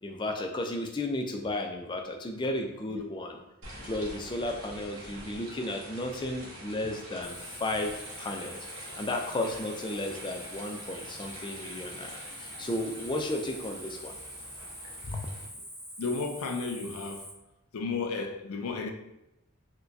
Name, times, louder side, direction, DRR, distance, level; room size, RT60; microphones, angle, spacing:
voice 1, 0.0-3.4 3.8-7.9 8.2-14.2 15.1-15.3, left 1 dB, 20° left, 0.3 m, -34 dB
sound 1, 3.6-15.4, right 1 dB, 70° right, 1.0 m, -46 dB
Cricket, 7.2-17.3, equal, ahead, 0.9 m, -45 dB
voice 2, 16.0-17.3 17.7-18.9, left 4 dB, 85° left, 0.4 m, -33 dB
4.5 x 2.2 x 2.5 m
head